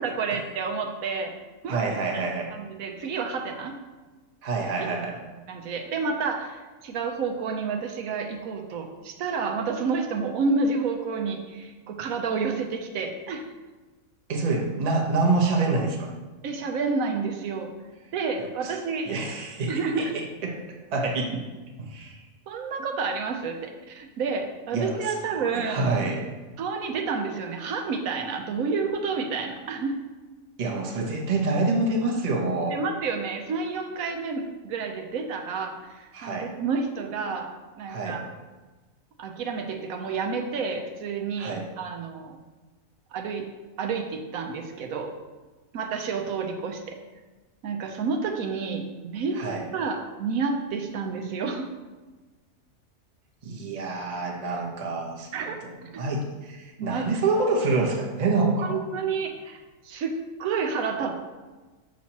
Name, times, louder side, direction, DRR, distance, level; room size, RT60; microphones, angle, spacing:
voice 1, 0.0-1.3 1.6-1.8 2.1-3.7 5.5-13.5 16.4-17.7 18.1-19.1 19.7-20.1 22.5-25.8 26.6-29.9 32.7-37.5 37.8-38.2 39.2-42.4 43.1-43.4 43.8-45.1 45.7-47.0 47.6-49.4 49.7-51.7 55.3-55.6 55.9-56.0 56.8-57.2 58.6-60.1 60.4-61.1, right 4 dB, 80° right, 3 dB, 1.1 m, -30 dB
voice 2, 1.7-2.5 4.4-5.2 14.3-16.1 18.4-18.7 19.1-20.6 20.9-21.4 21.8-22.2 24.7-26.3 30.6-32.7 36.1-36.5 37.9-38.2 41.4-41.7 49.3-49.6 53.4-58.8, right 3 dB, 35° right, 0 dB, 0.7 m, -27 dB
6.1 x 5.8 x 2.9 m, 1.3 s
omnidirectional pair, 1.5 m